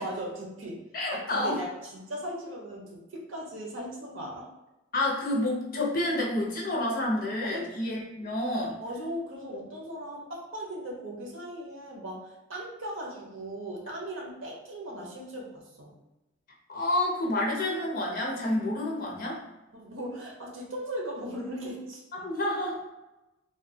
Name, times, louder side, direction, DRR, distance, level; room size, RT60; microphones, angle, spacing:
voice 1, 0.0-0.8 1.1-4.4 6.1-6.2 7.4-7.7 8.8-15.9 19.7-22.3, right 1 dB, 80° right, -2 dB, 0.8 m, -38 dB
voice 2, 0.9-1.6 4.9-8.8 16.7-19.4 22.2-22.9, left 1 dB, 45° left, -3 dB, 0.7 m, -29 dB
3.2 x 2.3 x 2.7 m, 0.99 s
head